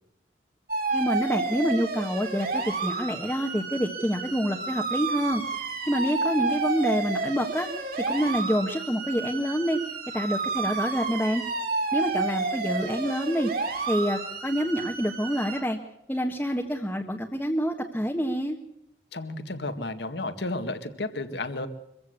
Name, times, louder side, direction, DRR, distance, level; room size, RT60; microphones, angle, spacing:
sound 1, 0.7-15.6, right 4 dB, 50° right, 4.3 m, -31 dB
voice 1, 0.9-7.7 8.0-9.8 10.1-11.4 11.9-13.5 13.9-15.8 16.1-18.6, equal, 10° left, 1 dB, 1.4 m, -27 dB
voice 2, 19.1-21.7, left 2 dB, 65° left, 10 dB, 1.9 m, -32 dB
24.0 x 15.5 x 8.2 m, 0.81 s
head